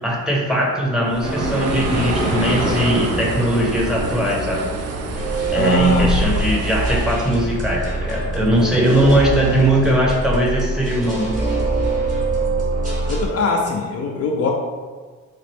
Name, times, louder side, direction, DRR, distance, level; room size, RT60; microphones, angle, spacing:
voice 1, 0.0-4.8 5.5-11.3, right 1 dB, ahead, -3 dB, 0.9 m, -19 dB
Bird, 1.1-7.3, right 2 dB, 55° right, 0.5 m, -27 dB
sound 1, 1.2-7.5, right 1 dB, 85° right, 0.8 m, -27 dB
sound 2, 5.1-13.3, right 2 dB, 25° right, 1.2 m, -24 dB
voice 2, 5.5-6.1 13.1-14.5, left 3 dB, 50° left, 1 dB, 0.5 m, -22 dB
4.0 x 2.4 x 3.4 m, 1.4 s
cardioid pair, 90°, 30 cm